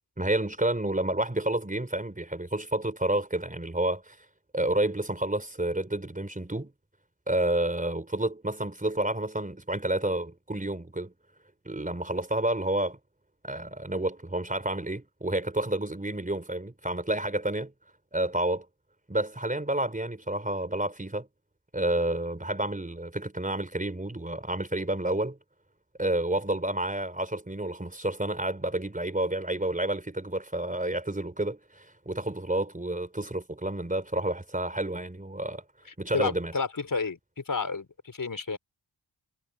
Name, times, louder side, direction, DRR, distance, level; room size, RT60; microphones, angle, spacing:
voice 1, 0.2-4.2 4.5-6.7 7.3-11.1 11.6-13.0 13.4-17.7 18.1-18.7 19.1-21.3 21.7-25.4 26.0-35.6 36.0-36.5, right 1 dB, 20° right, 4.1 m, -30 dB
voice 2, 36.1-38.6, left 4 dB, 45° left, 5.2 m, -31 dB
cardioid pair, 50°, 44 cm